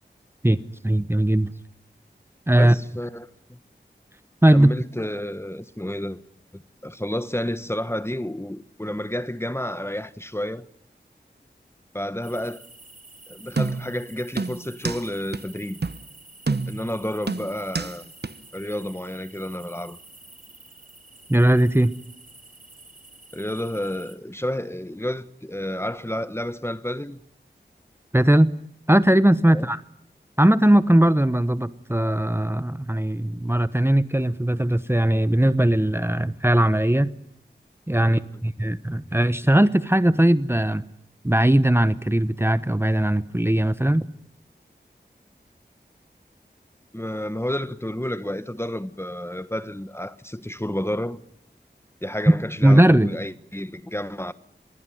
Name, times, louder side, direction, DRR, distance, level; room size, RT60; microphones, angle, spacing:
voice 1, 0.8-1.5 2.5-2.7 4.4-4.7 21.3-21.9 28.1-28.5 28.9-29.8 30.4-37.1 37.9-40.8 41.2-44.1 52.6-53.1, right 1 dB, 15° right, 1.0 m, -19 dB
voice 2, 2.5-3.6 4.5-6.2 6.5-10.7 11.9-12.6 13.3-15.8 16.7-18.0 18.5-20.0 23.3-27.2 29.5-29.7 38.0-38.2 46.9-51.2 52.0-54.3, left 1 dB, 15° left, 1.2 m, -30 dB
sound 1, 12.2-24.2, right 2 dB, 45° right, 4.2 m, -49 dB
sound 2, 13.6-14.0 14.4-15.0 15.3-15.4 15.8-16.0 16.5-16.9 17.3-17.9 18.2-18.3, right 3 dB, 65° right, 1.1 m, -27 dB
26.0 x 21.5 x 9.3 m
wide cardioid pair, 55°, 18 cm